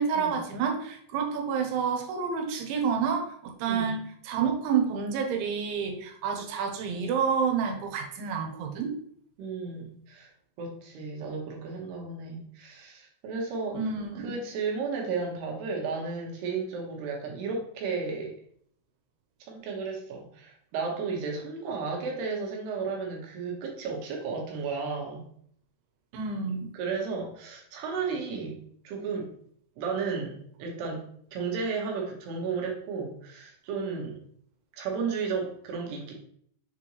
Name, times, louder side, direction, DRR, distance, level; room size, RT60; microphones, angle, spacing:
voice 1, 0.0-8.9 13.7-14.4 26.1-26.7, right 6 dB, 85° right, 3 dB, 3.3 m, -29 dB
voice 2, 9.4-10.3 10.6-13.8 14.2-18.3 19.5-25.2 26.7-29.3 29.8-31.0 31.3-34.2 34.8-36.1, right 4 dB, 70° right, 0 dB, 3.0 m, -33 dB
7.2 x 4.3 x 3.1 m, 0.63 s
omnidirectional pair, 5.3 m